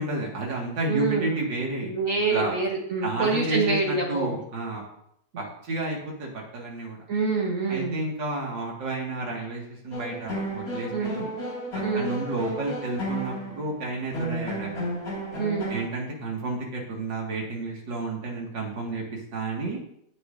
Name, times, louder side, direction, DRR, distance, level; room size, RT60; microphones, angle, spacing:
voice 1, 0.0-1.9 2.3-2.5 3.0-4.8 5.4-7.0 7.7-11.3 11.7-14.9 15.7-19.8, right 2 dB, 85° right, -2 dB, 2.7 m, -31 dB
voice 2, 0.9-1.4 1.8-4.4 7.1-8.0 10.9-11.1 11.8-12.1 15.4-15.7, right 4 dB, 50° right, -1 dB, 1.4 m, -26 dB
sound 1, 9.9-15.8, right 1 dB, 50° left, 3.0 m, -33 dB
16.5 x 6.1 x 2.7 m, 0.72 s
omnidirectional pair, 1.9 m